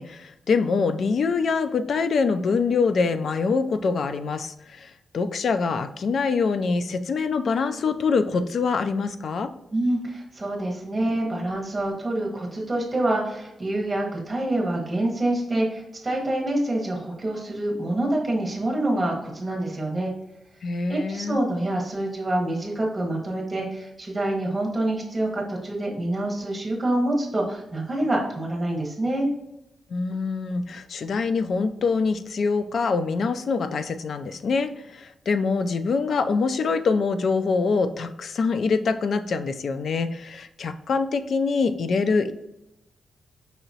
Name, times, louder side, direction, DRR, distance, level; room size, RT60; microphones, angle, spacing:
voice 1, 0.0-9.5 20.6-21.4 29.9-42.3, left 4 dB, 55° left, 9 dB, 0.4 m, -24 dB
voice 2, 9.7-20.1 20.9-29.3, right 1 dB, 15° right, -1 dB, 1.1 m, -26 dB
5.4 x 2.9 x 2.7 m, 0.86 s
wide cardioid pair, 170°, 0 cm